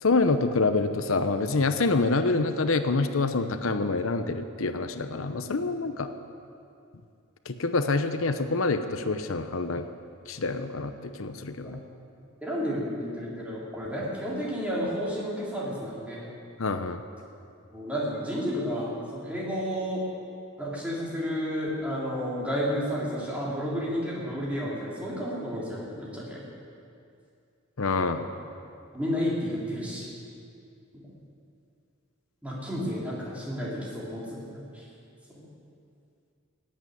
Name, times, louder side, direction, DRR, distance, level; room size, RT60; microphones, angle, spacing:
voice 1, 0.0-6.1 7.5-9.9 10.3-11.8 16.6-17.0 27.8-28.2, left 3 dB, 90° left, 9 dB, 0.8 m, -26 dB
voice 2, 12.4-16.3 17.7-20.0 20.6-26.4 27.9-28.2 28.9-30.1 32.4-34.8 35.3-35.5, equal, 5° right, -6 dB, 3.5 m, -31 dB
16.0 x 8.8 x 9.4 m, 2.5 s
head